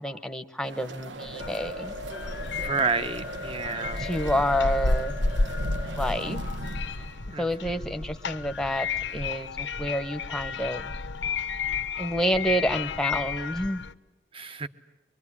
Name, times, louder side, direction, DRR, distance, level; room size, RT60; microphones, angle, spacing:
voice 1, 0.0-1.9 4.0-5.2 6.0-6.4 7.4-8.9 9.1-10.9 12.0-13.8, equal, 5° left, 8 dB, 1.0 m, -28 dB
sound 1, 0.6-7.4, right 2 dB, 80° right, 1.2 m, -41 dB
sound 2, 1.2-6.2, left 1 dB, 60° right, 5.7 m, -40 dB
sound 3, 1.4-13.9, left 4 dB, 80° left, 0.9 m, -32 dB
voice 2, 2.6-4.0 7.3-7.4 14.3-14.7, right 4 dB, 30° right, 11 dB, 1.1 m, -29 dB
25.0 x 23.5 x 9.9 m, 0.99 s
head